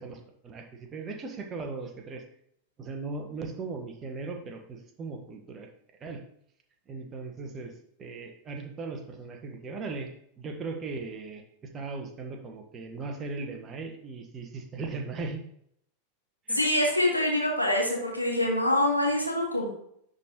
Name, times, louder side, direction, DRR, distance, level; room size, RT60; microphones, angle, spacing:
voice 1, 0.0-2.2 2.8-5.7 6.0-6.2 6.9-7.7 8.0-10.1 10.4-11.4 11.7-15.4 16.5-16.6, right 3 dB, 25° right, 3 dB, 1.2 m, -38 dB
voice 2, 16.5-19.7, left 1 dB, 90° left, -2 dB, 1.6 m, -25 dB
10.5 x 3.8 x 2.9 m, 0.69 s
figure-of-eight pair, 90°, 0 cm